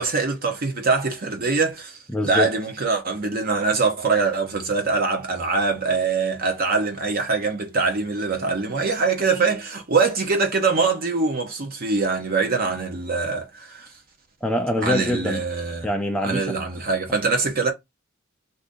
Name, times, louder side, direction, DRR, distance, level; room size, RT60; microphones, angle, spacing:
voice 1, 0.0-13.9 14.8-15.9 16.2-17.7, right 4 dB, 45° right, 0.8 m, -23 dB
voice 2, 2.1-2.5 14.4-15.5 15.8-16.6, left 1 dB, 5° left, 0.4 m, -24 dB
2.7 x 2.6 x 3.6 m
head